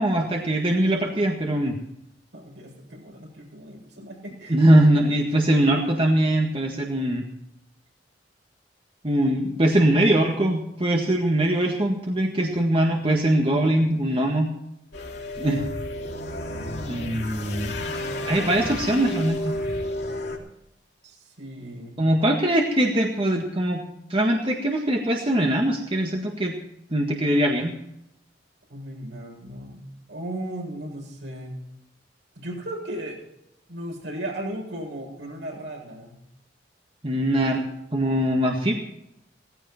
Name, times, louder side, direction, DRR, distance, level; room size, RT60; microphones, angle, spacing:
voice 1, 0.0-1.8 4.5-7.2 9.0-14.5 15.4-15.6 16.9-17.7 18.3-19.6 22.0-23.8 24.1-26.6 26.9-27.7 37.0-37.7 37.9-38.7, right 1 dB, 30° right, 1 dB, 1.8 m, -22 dB
voice 2, 2.3-4.7 17.8-19.3 21.0-22.0 28.7-29.8 30.1-31.6 32.3-33.2 33.7-36.2, right 1 dB, 75° right, 0 dB, 7.8 m, -37 dB
sound 1, 14.9-20.4, left 1 dB, 65° left, 3.4 m, -31 dB
17.5 x 15.5 x 4.5 m, 0.81 s
head